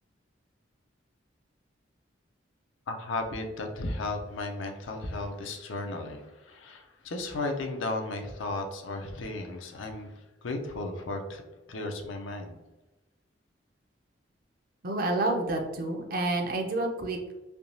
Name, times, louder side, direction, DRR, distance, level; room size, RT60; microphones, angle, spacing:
voice 1, 2.9-12.6, left 2 dB, 90° left, 4 dB, 0.5 m, -35 dB
voice 2, 14.8-17.2, right 2 dB, 50° right, 2 dB, 0.5 m, -29 dB
3.4 x 2.8 x 2.6 m, 1.1 s
head